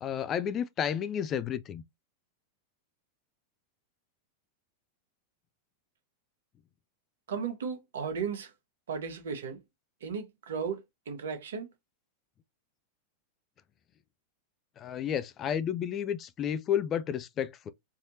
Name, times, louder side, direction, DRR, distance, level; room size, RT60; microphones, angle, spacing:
voice 1, 0.0-1.8 14.8-17.7, left 9 dB, 30° left, 0.4 m, -31 dB
voice 2, 7.3-8.5 8.9-9.6 10.0-10.8 11.1-11.7, right 6 dB, 60° right, 1.0 m, -35 dB
4.7 x 2.8 x 2.7 m
figure-of-eight pair, 90°, 0 cm